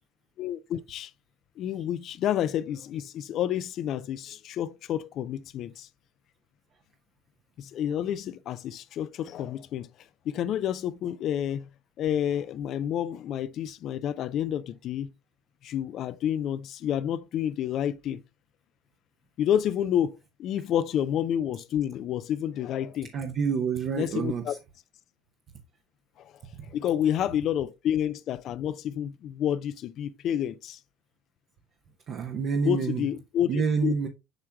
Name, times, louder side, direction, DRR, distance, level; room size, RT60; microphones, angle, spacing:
voice 1, 0.4-1.1 1.6-5.9 7.6-9.9 10.3-11.7 12.0-15.1 15.6-18.2 19.4-23.1 24.0-24.5 26.2-26.3 26.7-30.8 32.6-33.9, left 10 dB, 50° left, 0.5 m, -29 dB
voice 2, 23.1-24.6 32.1-33.1 33.5-34.1, right 6 dB, 50° right, 0.9 m, -28 dB
7.9 x 5.6 x 2.3 m
hypercardioid pair, 70°, 0 cm